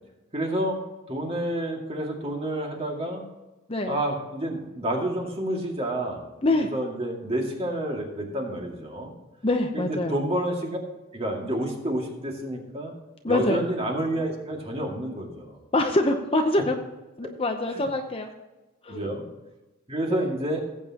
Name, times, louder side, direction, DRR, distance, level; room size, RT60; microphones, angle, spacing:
voice 1, 0.3-3.2 3.9-6.2 6.6-9.1 9.7-10.8 11.1-12.9 13.3-15.6 17.7-17.9 18.9-19.2 19.9-20.6, right 1 dB, 25° right, 0 dB, 2.1 m, -29 dB
voice 2, 3.7-4.0 6.4-6.7 9.4-10.2 13.2-13.7 15.7-16.8 17.2-18.3 18.8-19.0 20.1-20.3, left 2 dB, 25° left, 4 dB, 0.7 m, -25 dB
17.5 x 8.4 x 2.9 m, 1.1 s
head